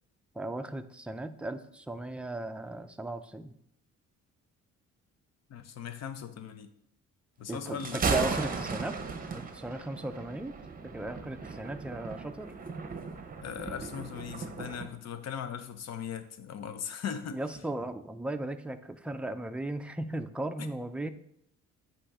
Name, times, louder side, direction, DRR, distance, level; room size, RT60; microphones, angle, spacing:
voice 1, 0.3-3.5 7.5-9.0 9.3-10.5 10.8-12.5 17.3-21.1, right 2 dB, 5° right, 8 dB, 0.4 m, -36 dB
voice 2, 5.5-6.7 7.4-8.0 13.4-17.4 20.6-20.7, left 8 dB, 60° left, 10 dB, 0.6 m, -39 dB
Thunder, 7.7-14.9, right 4 dB, 30° right, 0.8 m, -36 dB
8.5 x 2.9 x 4.8 m, 0.71 s
cardioid pair, 90°, 30 cm